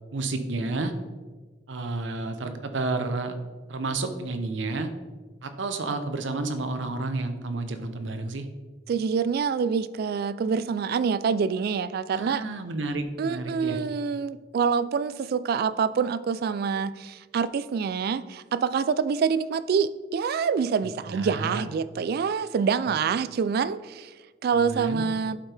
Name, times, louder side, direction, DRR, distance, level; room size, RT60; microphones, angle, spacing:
voice 1, 0.1-0.9 1.7-3.4 3.7-4.9 5.4-8.5 12.1-13.8 21.1-21.6 24.5-25.1, right 3 dB, 70° right, 0.7 m, -31 dB
voice 2, 8.9-12.4 13.2-24.1 24.4-25.4, right 6 dB, 55° right, 0.3 m, -26 dB
11.5 x 4.5 x 3.4 m
head